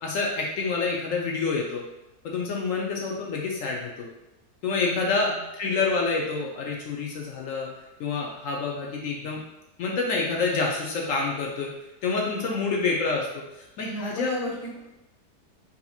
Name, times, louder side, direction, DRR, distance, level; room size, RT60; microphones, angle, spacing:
voice 1, 0.0-1.8 2.2-4.1 4.6-7.7 8.0-9.4 9.8-11.7 12.0-14.3, left 4 dB, 70° left, -1 dB, 0.8 m, -27 dB
voice 2, 4.7-5.4 12.0-12.6 13.8-14.8, equal, 45° left, -7 dB, 1.5 m, -36 dB
4.1 x 2.7 x 2.3 m, 0.94 s
omnidirectional pair, 1.7 m